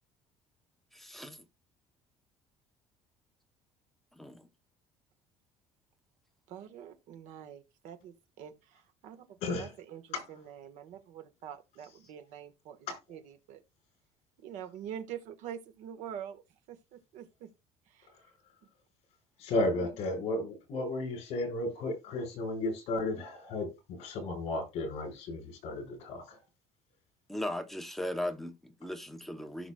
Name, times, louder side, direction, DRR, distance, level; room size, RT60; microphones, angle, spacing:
voice 1, 0.9-1.4 4.2-4.5 27.3-29.7, left 1 dB, ahead, 0.7 m, -38 dB
voice 2, 6.5-13.6 14.4-16.4 16.7-17.5 17.9-18.3 19.7-19.9, right 9 dB, 65° right, 1.4 m, -45 dB
voice 3, 19.4-26.4, left 2 dB, 55° left, 4.7 m, -34 dB
16.5 x 6.0 x 2.3 m
cardioid pair, 175°, 13 cm